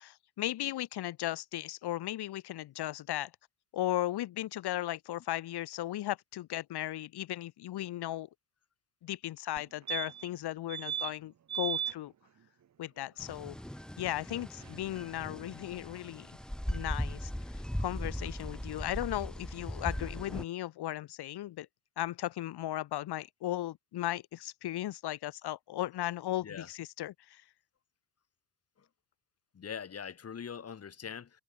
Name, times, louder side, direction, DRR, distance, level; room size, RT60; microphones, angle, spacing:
voice 1, 0.0-3.3 3.7-8.3 9.0-12.1 12.8-13.6 14.0-16.3 16.7-21.7 22.0-27.4, left 14 dB, 55° left, 2.7 m, -36 dB
sound 1, 9.6-9.7 9.9-10.4 10.7-11.1 11.5-11.9 14.3-14.4 14.6-14.7, right 9 dB, 35° right, 1.8 m, -35 dB
sound 2, 13.2-20.4, equal, ahead, 2.2 m, -39 dB
voice 2, 29.5-31.4, left 7 dB, 30° left, 2.5 m, -42 dB
supercardioid pair, 95°, 48 cm